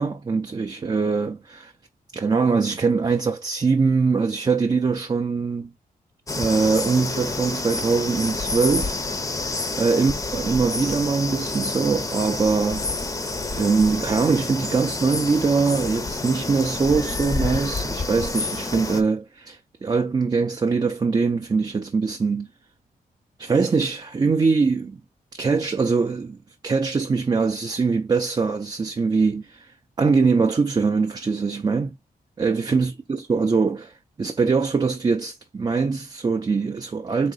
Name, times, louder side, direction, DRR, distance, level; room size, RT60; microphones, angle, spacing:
voice 1, 0.0-1.7 2.1-5.7 6.4-9.0 9.8-12.9 13.5-22.5 23.4-25.0 25.3-26.4 26.6-31.9 32.4-37.3, right 4 dB, 30° right, 0.4 m, -22 dB
sound 1, 6.3-19.0, left 3 dB, 20° left, 0.6 m, -28 dB
3.7 x 3.0 x 3.9 m
wide cardioid pair, 110°, 15 cm